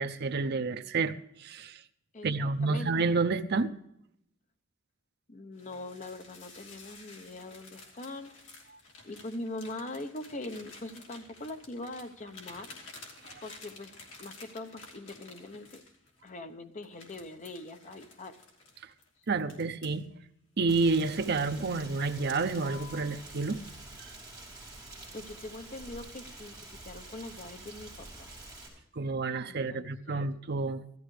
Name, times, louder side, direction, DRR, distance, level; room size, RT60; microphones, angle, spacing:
voice 1, 0.0-1.8 2.2-3.7 19.3-20.1 20.6-23.6 28.9-30.8, right 3 dB, 55° right, 0.7 m, -29 dB
voice 2, 2.1-2.9 5.3-8.3 9.0-12.7 13.4-13.9 14.2-15.8 16.2-18.4 25.1-28.3 29.4-30.3, left 2 dB, 40° left, 0.9 m, -42 dB
sound 1, 5.6-16.3 16.8-20.0 20.6-21.5 21.8-22.1 22.6-23.1, left 3 dB, 70° left, 3.0 m, -52 dB
Rain, 20.7-28.7, right 2 dB, 5° right, 5.4 m, -47 dB
16.5 x 13.0 x 3.2 m
head